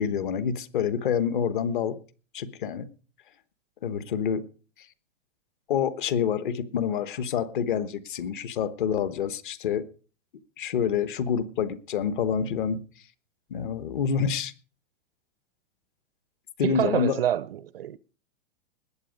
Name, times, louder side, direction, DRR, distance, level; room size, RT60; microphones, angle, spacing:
voice 1, 0.0-2.0 2.3-2.9 3.8-4.4 5.7-9.8 10.6-12.8 13.5-14.5 16.6-17.1, left 7 dB, 40° left, 1.1 m, -27 dB
voice 2, 16.6-18.0, right 11 dB, 50° right, 0.5 m, -27 dB
19.5 x 8.0 x 5.1 m
supercardioid pair, 180°, 38 cm